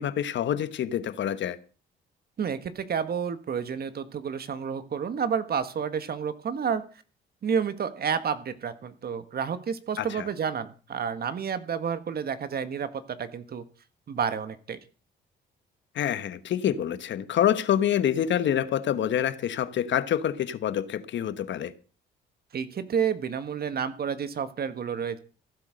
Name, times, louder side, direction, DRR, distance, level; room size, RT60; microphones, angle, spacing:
voice 1, 0.0-1.6 10.0-10.2 15.9-21.7, left 10 dB, 65° left, 1.2 m, -26 dB
voice 2, 2.4-6.8 7.4-13.6 14.1-14.8 22.5-25.2, right 7 dB, 50° right, 1.6 m, -30 dB
15.0 x 8.3 x 6.5 m
cardioid pair, 90°, 20 cm